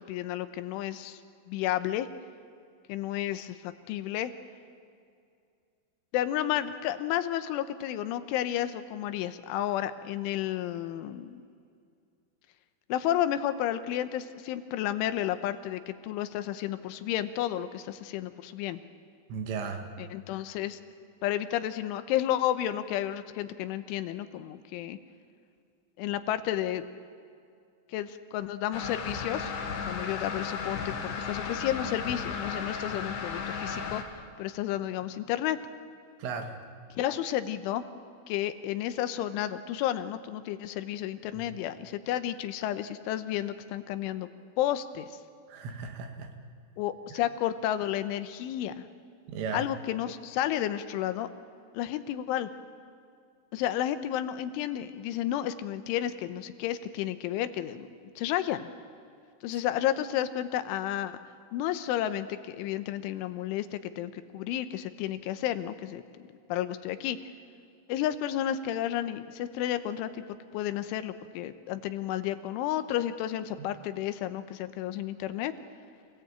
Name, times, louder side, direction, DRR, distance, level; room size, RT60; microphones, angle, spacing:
voice 1, 0.1-1.2 1.5-2.1 2.9-4.3 6.1-11.4 12.9-18.8 20.0-20.8 21.2-25.0 26.0-26.8 27.9-29.5 29.9-34.0 34.4-35.6 36.9-37.9 38.3-44.3 44.6-45.1 46.8-48.8 49.5-51.3 51.8-52.5 53.5-58.7 59.4-61.2 61.5-66.0 66.5-67.2 67.9-70.2 70.5-75.5, left 12 dB, 85° left, 11 dB, 3.4 m, -31 dB
voice 2, 19.3-19.9 36.2-36.5 41.3-41.4 45.5-46.3 49.3-49.7, right 5 dB, 90° right, 5 dB, 4.5 m, -35 dB
sound 1, 28.7-34.0, left 5 dB, 55° left, 2.6 m, -35 dB
27.0 x 17.5 x 8.9 m, 2.3 s
omnidirectional pair, 5.5 m